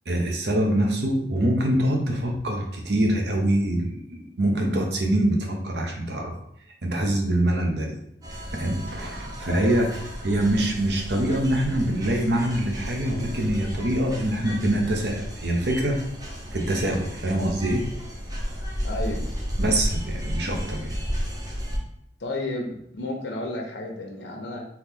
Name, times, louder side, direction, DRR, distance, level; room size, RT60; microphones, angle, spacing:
voice 1, 0.1-6.3 6.8-8.0 8.5-9.9 10.2-16.0 16.5-17.9 19.6-20.9, right 1 dB, 70° right, 2 dB, 0.8 m, -24 dB
sound 1, 8.2-21.8, equal, 20° right, 0.8 m, -33 dB
voice 2, 9.4-9.9 18.8-19.3 22.2-24.6, left 2 dB, 90° left, 1 dB, 0.8 m, -32 dB
4.0 x 3.0 x 3.5 m, 0.74 s
head